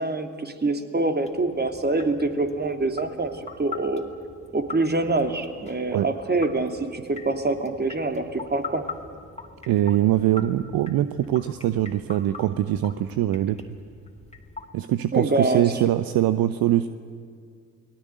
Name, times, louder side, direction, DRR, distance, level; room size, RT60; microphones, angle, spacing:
voice 1, 0.0-4.0 4.5-8.8 15.1-15.7, right 2 dB, 25° right, 6 dB, 3.1 m, -25 dB
sound 1, 1.2-14.7, left 4 dB, 15° left, 3.4 m, -43 dB
voice 2, 9.7-13.6 14.7-16.9, right 13 dB, 55° right, 12 dB, 1.0 m, -23 dB
30.0 x 20.5 x 9.3 m, 2.1 s
figure-of-eight pair, 50°, 41 cm